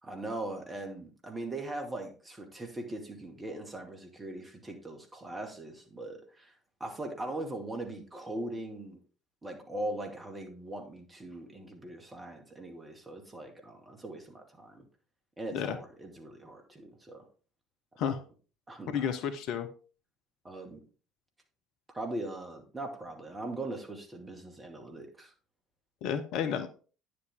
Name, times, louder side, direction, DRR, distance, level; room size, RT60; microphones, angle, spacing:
voice 1, 0.0-6.5 6.8-9.0 9.4-14.9 15.4-17.2 18.7-19.1 20.4-20.8 21.9-25.3, right 1 dB, 20° right, 3 dB, 2.3 m, -40 dB
voice 2, 18.9-19.7 26.0-26.7, left 8 dB, 55° left, 9 dB, 0.8 m, -31 dB
9.6 x 7.0 x 3.7 m, 0.37 s
figure-of-eight pair, 55°, 0 cm